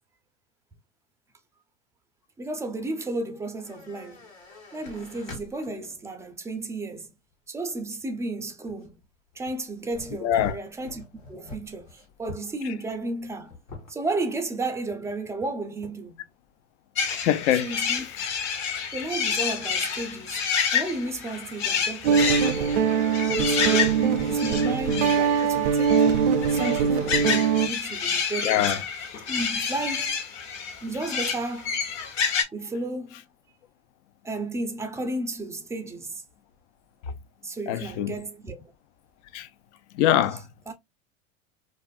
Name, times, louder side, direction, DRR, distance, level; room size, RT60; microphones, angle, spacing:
voice 1, 2.4-4.3 4.7-7.1 7.5-9.0 9.4-11.0 11.3-13.5 13.9-16.1 17.5-18.1 18.9-20.4 20.7-22.8 23.4-26.0 26.5-28.9 29.3-30.2 30.8-31.7 32.5-33.3 34.2-36.2 37.4-38.6 40.7-40.8, right 2 dB, 10° right, 0.4 m, -33 dB
sound 1, 3.6-6.0 6.6-6.7 8.7-9.0 9.5-12.5 12.9-13.0 13.2-13.9, left 2 dB, 85° left, 1.2 m, -44 dB
voice 2, 10.2-10.6 17.1-18.0 28.4-28.8 29.6-29.7 37.7-38.1 39.3-39.5 39.9-40.4, left 11 dB, 65° left, 0.5 m, -24 dB
sound 2, 16.9-32.4, left 6 dB, 45° left, 0.9 m, -29 dB
Guitar, 22.0-27.7, right 6 dB, 65° right, 0.5 m, -22 dB
2.5 x 2.4 x 2.3 m
hypercardioid pair, 90°, 38 cm